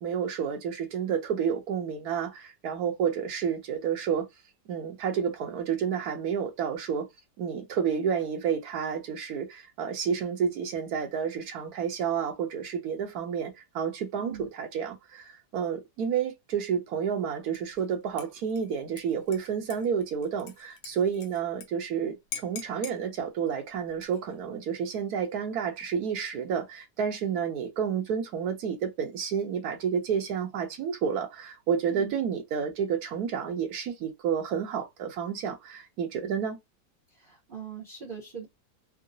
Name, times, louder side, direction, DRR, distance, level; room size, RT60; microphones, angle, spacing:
voice 1, 0.0-4.3 4.7-7.1 7.4-36.6, right 7 dB, 65° right, 1.2 m, -30 dB
voice 2, 14.2-14.5 31.9-32.1 37.1-38.5, right 6 dB, 40° right, 0.8 m, -41 dB
Dishes pots and pans / Liquid, 17.5-17.9 18.2-21.7 21.9-22.0 22.3-23.0 23.9-24.4, left 6 dB, 80° left, 1.4 m, -44 dB
3.7 x 2.0 x 2.6 m
omnidirectional pair, 1.9 m